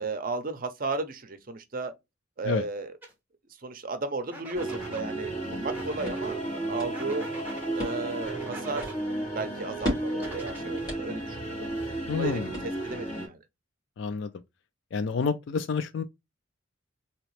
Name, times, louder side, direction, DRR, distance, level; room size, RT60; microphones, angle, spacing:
voice 1, 0.0-1.9 2.4-2.9 3.6-6.4 6.7-7.3 7.8-8.9 9.3-11.7 12.1-13.4, right 3 dB, 40° right, 0.6 m, -34 dB
sound 1, 3.0-3.1 4.3-5.0 5.7-6.2 6.9-7.7 8.2-9.0 10.1-10.9, right 1 dB, 10° right, 0.9 m, -44 dB
sound 2, 4.5-13.3, right 1 dB, 35° left, 2.8 m, -34 dB
sound 3, 5.6-13.1, equal, 20° left, 2.4 m, -39 dB
voice 2, 12.1-12.5 14.0-14.3 14.9-16.0, left 5 dB, 60° left, 0.3 m, -28 dB
3.9 x 2.9 x 3.1 m
head